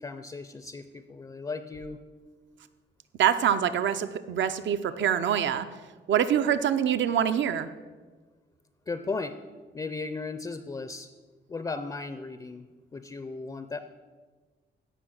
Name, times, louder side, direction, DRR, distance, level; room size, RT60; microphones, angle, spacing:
voice 1, 0.0-2.0 8.9-9.4 9.7-11.1 11.5-12.7 12.9-13.8, left 3 dB, 20° left, 10 dB, 0.4 m, -36 dB
voice 2, 3.2-5.7 6.1-7.7, right 9 dB, 75° right, 12 dB, 0.7 m, -25 dB
16.0 x 5.9 x 6.3 m, 1.4 s
wide cardioid pair, 155°, 19 cm